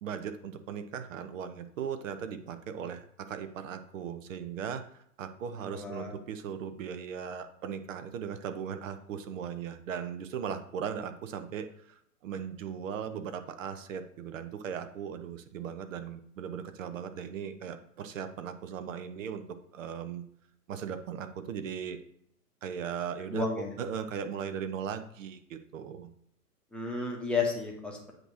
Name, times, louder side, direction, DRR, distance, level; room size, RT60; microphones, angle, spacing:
voice 1, 0.0-4.8 5.2-19.4 19.7-20.2 20.7-22.0 22.6-23.5 23.8-26.1, right 7 dB, 55° right, 10 dB, 0.9 m, -38 dB
voice 2, 5.6-6.1 23.3-23.7 26.7-28.1, left 4 dB, ahead, -1 dB, 1.0 m, -32 dB
7.9 x 3.0 x 6.2 m, 0.69 s
hypercardioid pair, 130°, 47 cm